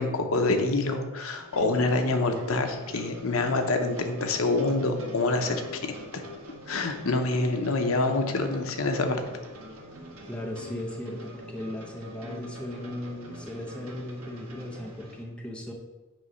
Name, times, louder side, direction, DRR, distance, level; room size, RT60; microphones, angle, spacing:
voice 1, 0.0-5.8 6.1-6.2 6.7-9.2, left 2 dB, 80° left, 5 dB, 0.8 m, -26 dB
sound 1, 1.3-15.2, left 1 dB, 85° right, 1.4 m, -44 dB
voice 2, 10.2-15.7, left 1 dB, 5° left, -1 dB, 0.7 m, -37 dB
8.6 x 3.2 x 5.3 m, 1.2 s
head